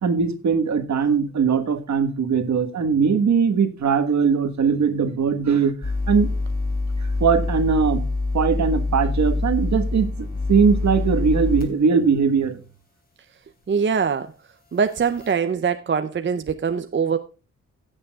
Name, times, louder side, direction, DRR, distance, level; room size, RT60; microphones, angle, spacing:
voice 1, 0.0-6.3 7.0-8.0 8.3-12.6, right 5 dB, 65° right, 1.6 m, -20 dB
sound 1, 5.8-11.7 12.2-12.3 14.9-15.3, left 3 dB, 30° left, 3.4 m, -25 dB
voice 2, 13.7-14.3 14.7-17.2, right 6 dB, 40° right, 0.7 m, -23 dB
16.0 x 8.6 x 2.4 m
wide cardioid pair, 120°, 30 cm